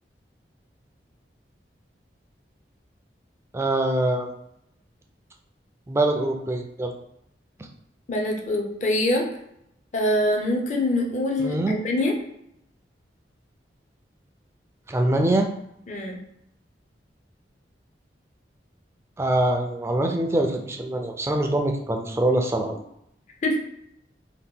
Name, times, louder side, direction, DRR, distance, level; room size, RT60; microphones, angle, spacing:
voice 1, 3.5-4.3 5.9-6.9 11.4-11.8 14.9-15.5 19.2-22.8, right 1 dB, 15° right, 3 dB, 0.3 m, -24 dB
voice 2, 8.1-9.2 9.9-12.1 15.9-16.2 23.4-23.6, left 1 dB, 40° left, 2 dB, 0.5 m, -24 dB
2.8 x 2.2 x 3.5 m, 0.77 s
head